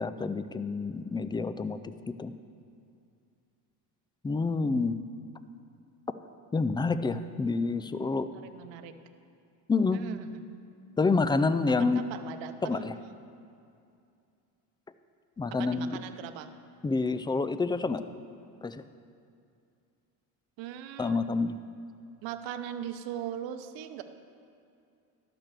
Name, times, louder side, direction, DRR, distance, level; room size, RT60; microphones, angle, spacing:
voice 1, 0.0-1.8 2.1-2.3 4.2-5.0 6.5-8.3 9.7-10.0 11.0-12.0 12.6-12.9 15.4-16.0 16.8-18.0 18.6-18.8 21.0-21.6, left 4 dB, 10° left, 12 dB, 0.3 m, -28 dB
voice 2, 8.3-8.9 9.9-10.5 11.7-13.2 15.6-16.5 20.6-21.2 22.2-24.0, right 10 dB, 65° right, 9 dB, 0.8 m, -40 dB
12.0 x 6.1 x 6.7 m, 2.5 s
hypercardioid pair, 65°, 48 cm